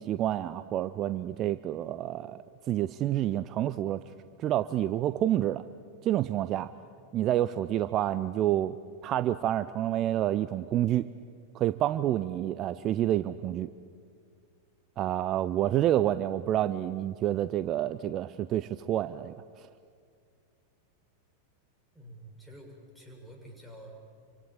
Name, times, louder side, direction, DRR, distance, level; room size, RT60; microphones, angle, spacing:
voice 1, 0.0-2.4 2.7-4.0 4.4-5.6 6.0-6.7 7.1-8.7 9.0-11.0 11.5-13.7 15.0-19.7, right 12 dB, 35° right, 14 dB, 0.6 m, -28 dB
voice 2, 21.9-24.0, right 1 dB, 5° left, 1 dB, 6.7 m, -48 dB
27.5 x 25.0 x 8.8 m, 2.2 s
figure-of-eight pair, 90°, 0 cm